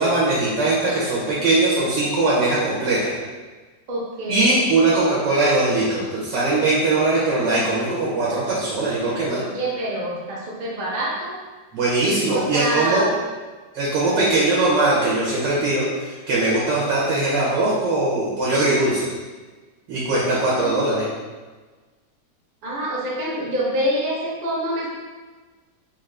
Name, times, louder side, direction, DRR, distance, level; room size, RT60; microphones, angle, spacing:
voice 1, 0.0-3.1 4.3-9.4 11.7-13.1 13.7-19.1 19.9-21.1, right 2 dB, 90° right, -6 dB, 1.5 m, -20 dB
voice 2, 3.9-4.6 9.3-11.4 12.3-13.1 20.6-21.0 22.6-24.9, right 1 dB, 60° right, -5 dB, 0.5 m, -26 dB
4.0 x 2.5 x 3.2 m, 1.3 s
omnidirectional pair, 1.9 m